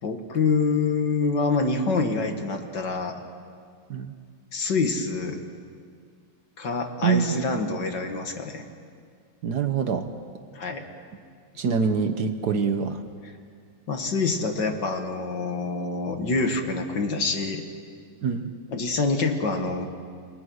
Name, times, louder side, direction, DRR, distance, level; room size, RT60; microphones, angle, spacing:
voice 1, 0.0-3.2 4.5-5.4 6.6-8.7 10.5-10.8 13.2-13.3 13.9-17.6 18.7-19.9, left 4 dB, 55° left, 5 dB, 2.2 m, -26 dB
voice 2, 7.0-7.4 9.4-10.1 11.6-13.0 18.2-18.5, right 6 dB, 55° right, 8 dB, 1.4 m, -25 dB
29.0 x 21.0 x 6.4 m, 2.1 s
omnidirectional pair, 2.4 m